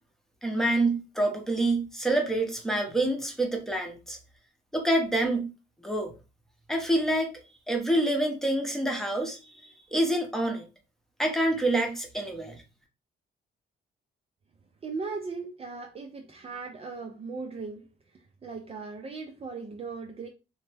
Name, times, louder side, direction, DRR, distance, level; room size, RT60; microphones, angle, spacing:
voice 1, 0.4-4.2 4.7-5.5 5.8-6.1 6.7-7.4 7.7-9.4 9.9-10.7 11.2-12.6, right 1 dB, ahead, 0.8 m, -27 dB
voice 2, 14.8-17.8 18.4-20.3, right 4 dB, 30° right, 0.5 m, -38 dB
3.1 x 2.1 x 3.3 m
cardioid pair, 90°, 20 cm